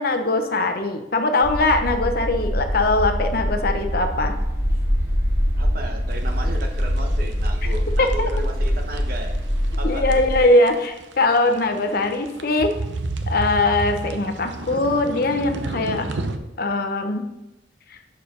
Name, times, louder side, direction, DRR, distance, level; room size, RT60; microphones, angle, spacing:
voice 1, 0.0-4.3 8.0-8.3 9.8-12.7 13.3-16.1 16.6-17.2, left 2 dB, 50° left, 6 dB, 0.8 m, -21 dB
sound 1, 1.4-10.4, equal, 20° right, 1.9 m, -23 dB
voice 2, 5.6-9.4 9.8-10.2, equal, 50° right, 4 dB, 1.0 m, -34 dB
sound 2, 6.1-16.4, right 2 dB, 75° right, 0.7 m, -31 dB
6.7 x 5.2 x 5.3 m, 0.94 s
head